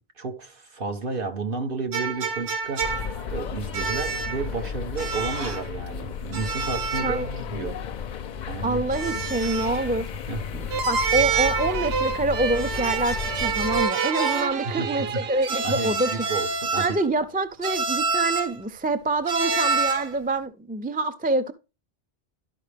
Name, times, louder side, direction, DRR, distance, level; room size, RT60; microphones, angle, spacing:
voice 1, 0.2-3.0 3.3-7.8 8.5-8.8 10.3-10.4 14.6-15.2 15.6-17.0, right 4 dB, 55° right, 1.3 m, -32 dB
sound 1, 1.9-3.3 3.7-4.4 5.0-5.7 6.3-7.2 7.5-7.6 8.9-9.9 11.0-11.8 12.5-14.6 15.4-17.1 17.6-18.6 19.3-20.1, right 5 dB, 90° right, 1.3 m, -27 dB
sound 2, 2.8-13.9, left 7 dB, 55° left, 0.5 m, -33 dB
voice 2, 8.6-10.1 10.5-16.2 16.8-21.5, right 2 dB, 15° right, 0.4 m, -26 dB
sound 3, 10.7-16.2, right 5 dB, 70° right, 0.8 m, -30 dB
12.0 x 4.8 x 3.4 m
omnidirectional pair, 1.1 m